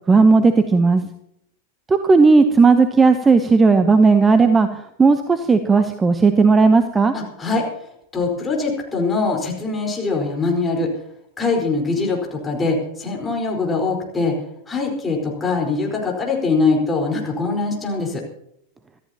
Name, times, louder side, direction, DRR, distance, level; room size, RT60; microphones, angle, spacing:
voice 1, 0.1-1.0 1.9-7.1, right 4 dB, 15° right, 10 dB, 0.9 m, -14 dB
voice 2, 7.1-7.7 8.1-10.9 11.4-14.4 14.7-18.2, left 3 dB, 15° left, -1 dB, 4.6 m, -22 dB
25.0 x 14.0 x 2.9 m, 0.74 s
figure-of-eight pair, 90°, 0 cm